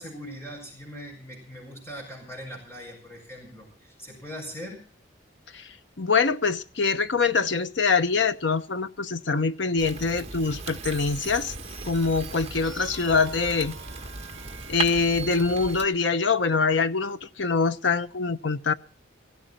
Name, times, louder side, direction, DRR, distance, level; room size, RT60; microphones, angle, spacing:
voice 1, 0.0-4.8, equal, 15° left, 1 dB, 7.4 m, -40 dB
voice 2, 6.0-11.5 11.9-13.8 14.7-18.7, left 4 dB, 70° left, 12 dB, 1.0 m, -24 dB
Fire, 9.8-15.9, right 4 dB, 35° right, 1.7 m, -37 dB
sound 1, 10.8-15.8, right 4 dB, 5° right, 5.7 m, -44 dB
18.0 x 15.5 x 4.3 m, 0.41 s
head